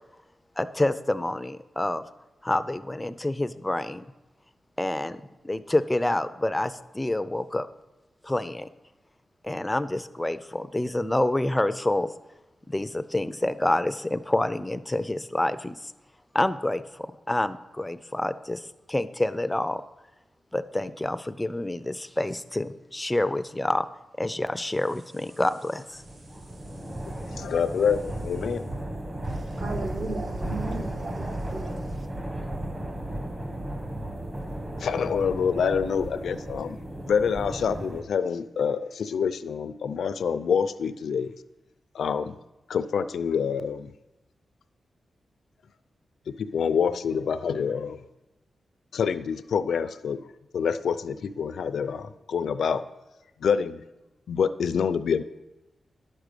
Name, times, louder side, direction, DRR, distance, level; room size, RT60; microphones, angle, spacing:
voice 1, 0.6-2.0 2.4-4.0 4.8-7.7 8.2-8.7 9.4-12.1 12.7-15.9 16.3-19.8 20.5-23.9 24.2-26.0, left 1 dB, 10° left, 0.4 m, -27 dB
sound 1, 24.6-28.8, right 1 dB, 75° right, 4.6 m, -58 dB
sound 2, 26.0-38.0, right 1 dB, 25° right, 1.1 m, -34 dB
voice 2, 27.4-28.7 34.8-36.8 37.1-41.3 41.9-42.4 42.7-43.9 46.4-48.0 48.9-50.2 50.5-52.8 53.4-53.8 54.3-55.2, left 6 dB, 90° left, 0.5 m, -26 dB
voice 3, 29.2-32.1, right 3 dB, 50° right, 0.7 m, -36 dB
11.0 x 6.1 x 6.7 m
wide cardioid pair, 165°, 0 cm